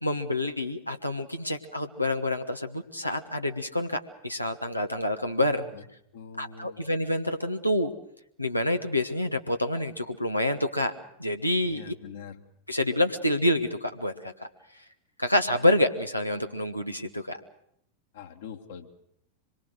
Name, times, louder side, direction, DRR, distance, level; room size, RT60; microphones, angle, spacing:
voice 1, 0.0-5.6 6.4-7.9 8.4-10.9 11.2-11.9 12.7-14.5 15.2-17.4, left 1 dB, 85° left, 5 dB, 1.2 m, -27 dB
voice 2, 5.4-5.8 6.1-6.8 11.6-12.4 18.1-18.9, left 6 dB, 60° left, 3 dB, 2.1 m, -43 dB
25.5 x 22.5 x 6.4 m, 0.73 s
figure-of-eight pair, 90°, 0 cm